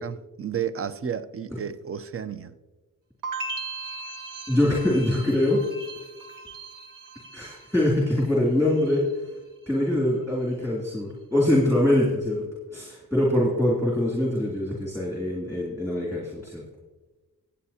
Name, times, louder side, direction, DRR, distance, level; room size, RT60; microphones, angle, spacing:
voice 1, 0.0-2.6, right 8 dB, 40° right, 0.6 m, -32 dB
sound 1, 3.2-8.3 8.6-9.2, right 3 dB, 65° right, 1.0 m, -38 dB
voice 2, 4.5-5.6 7.3-9.1 9.7-12.4 12.7-16.6, left 1 dB, 10° right, 2.6 m, -23 dB
24.0 x 8.4 x 2.8 m
wide cardioid pair, 125°, 34 cm